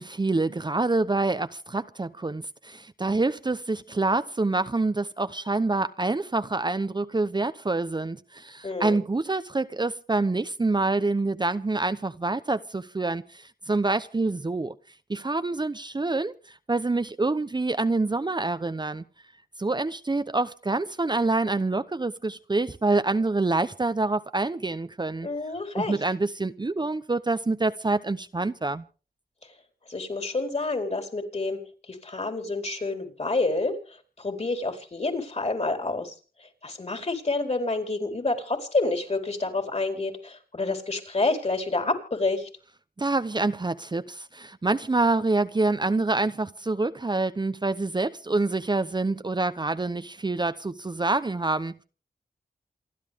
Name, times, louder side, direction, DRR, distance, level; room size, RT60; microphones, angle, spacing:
voice 1, 0.0-14.7 15.1-19.0 19.6-25.3 25.7-28.8 43.0-51.8, right 3 dB, 30° right, 0.8 m, -26 dB
voice 2, 8.6-9.0 25.2-25.9 29.9-31.6 31.9-36.1 36.4-42.5, left 3 dB, 45° left, 4.6 m, -28 dB
28.5 x 11.5 x 3.6 m
cardioid pair, 55°, 16 cm